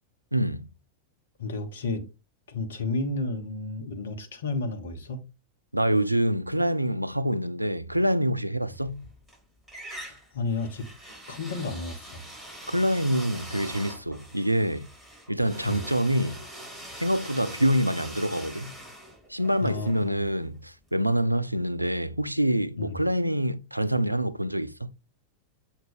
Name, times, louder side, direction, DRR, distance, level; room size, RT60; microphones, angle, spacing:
voice 1, 0.3-0.7 5.7-9.1 12.7-14.9 15.3-16.4 17.0-18.7 19.3-24.9, equal, 90° right, 0.4 m, -26 dB
voice 2, 1.4-2.1 2.5-5.2 8.6-8.7 10.0-10.8 11.3-12.3 15.6-15.9 19.6-20.2 22.8-23.0, left 3 dB, 65° left, 1.1 m, -32 dB
sound 1, 8.8-9.4 9.7-20.6, right 1 dB, ahead, 3.8 m, -43 dB
7.7 x 2.6 x 5.0 m
figure-of-eight pair, 90°, 0 cm